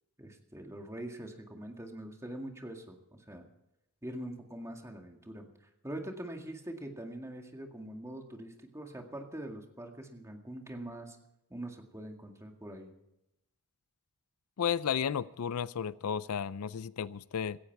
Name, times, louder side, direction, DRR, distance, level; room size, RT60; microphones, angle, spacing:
voice 1, 0.2-3.5 4.0-5.5 5.8-11.2 11.5-12.9, right 1 dB, 15° right, 3 dB, 2.0 m, -43 dB
voice 2, 14.6-17.6, left 7 dB, 80° left, 18 dB, 0.5 m, -33 dB
17.0 x 15.0 x 4.7 m, 0.85 s
head